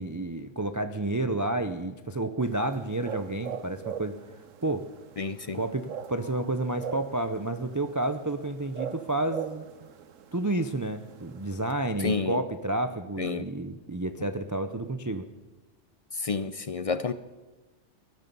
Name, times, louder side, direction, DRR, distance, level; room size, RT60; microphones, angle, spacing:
voice 1, 0.0-4.1 4.6-4.9 5.5-9.7 10.3-15.3, right 2 dB, 25° right, 8 dB, 0.4 m, -30 dB
sound 1, 2.4-11.7, right 7 dB, 85° right, 1.2 m, -42 dB
voice 2, 5.2-5.6 12.0-12.4 13.2-13.4 16.2-17.1, left 4 dB, 55° left, 13 dB, 0.4 m, -29 dB
20.0 x 12.5 x 5.4 m, 1.2 s
omnidirectional pair, 1.3 m